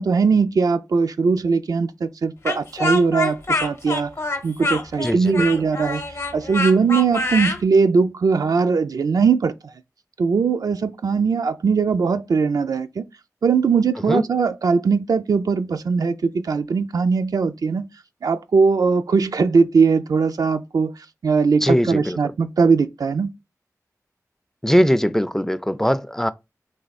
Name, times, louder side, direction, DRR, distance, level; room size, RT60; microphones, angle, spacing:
voice 1, 0.0-4.1 4.4-6.0 6.3-9.5 10.2-13.0 13.4-17.9 18.2-20.9 21.2-23.3, right 5 dB, 80° right, 0.4 m, -20 dB
Speech, 2.4-7.6, left 2 dB, 45° left, 0.7 m, -25 dB
voice 2, 5.0-5.3 14.1-14.2 21.6-22.2 24.6-26.3, equal, 5° left, 0.3 m, -20 dB
3.4 x 3.1 x 4.1 m
wide cardioid pair, 65°, 6 cm